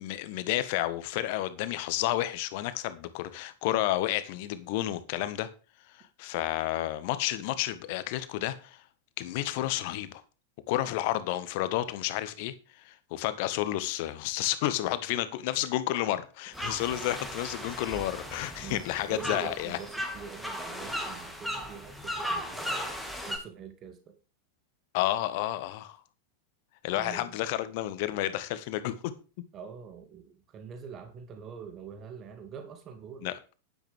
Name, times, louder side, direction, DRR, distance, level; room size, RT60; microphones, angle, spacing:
voice 1, 0.0-5.5 5.9-8.8 9.2-10.2 10.7-19.8 24.9-26.0 26.8-29.1 33.2-33.3, left 14 dB, 50° left, 1.5 m, -31 dB
sound 1, 16.5-23.4, equal, ahead, 2.9 m, -36 dB
voice 2, 19.1-22.8 23.3-24.1 26.9-27.4 29.5-33.3, right 7 dB, 30° right, 2.3 m, -44 dB
11.0 x 10.5 x 3.5 m
figure-of-eight pair, 90°, 0 cm